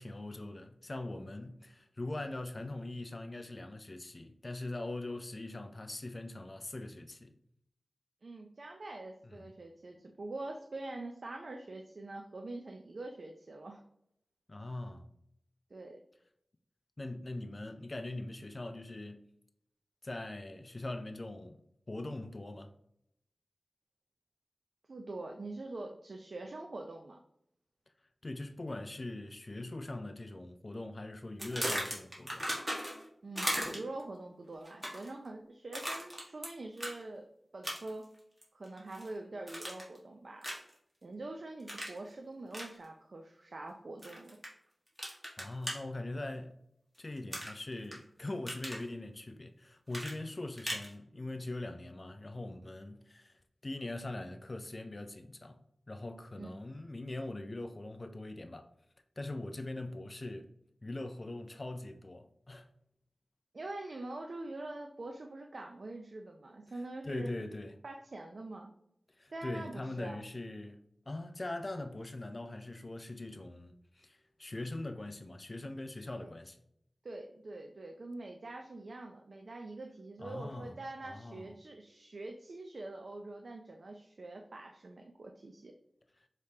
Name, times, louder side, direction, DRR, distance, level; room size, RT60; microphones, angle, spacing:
voice 1, 0.0-7.4 9.2-9.5 14.5-15.1 17.0-19.3 20.0-21.6 21.9-22.7 28.2-32.5 45.4-46.5 47.0-58.7 59.2-60.5 60.8-62.7 66.7-67.8 69.2-70.8 71.1-76.6 80.2-80.8 81.0-81.5, left 2 dB, 35° left, 0.4 m, -42 dB
voice 2, 8.2-13.8 15.7-16.0 24.9-27.2 33.2-37.2 37.5-38.1 38.5-40.5 41.0-44.4 56.4-56.5 63.5-67.3 67.8-68.7 69.3-70.2 76.2-76.3 77.0-85.7, right 2 dB, 60° right, 0.4 m, -44 dB
sound 1, 31.4-33.1 33.4-34.0 34.7-35.1 35.7-36.5 36.8-37.0 37.6-38.0 38.4-39.1 39.5-40.0 40.4-40.7 41.7-42.0 42.5-42.7 44.0-44.5 45.0-45.7 47.3-48.0 48.3-48.8 49.9-50.9, equal, 10° right, 1.4 m, -37 dB
4.9 x 3.3 x 2.8 m
wide cardioid pair, 95°, 0 cm